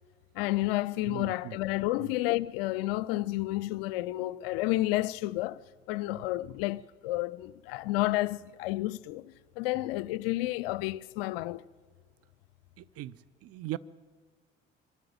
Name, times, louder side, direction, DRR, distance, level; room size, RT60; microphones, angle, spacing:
voice 1, 0.3-11.6, left 17 dB, 70° left, 0.5 m, -31 dB
voice 2, 1.1-1.6 2.0-2.1 6.1-6.2 9.7-9.8 12.8-13.8, right 15 dB, 50° right, 0.6 m, -40 dB
24.0 x 12.5 x 8.8 m
figure-of-eight pair, 50°, 31 cm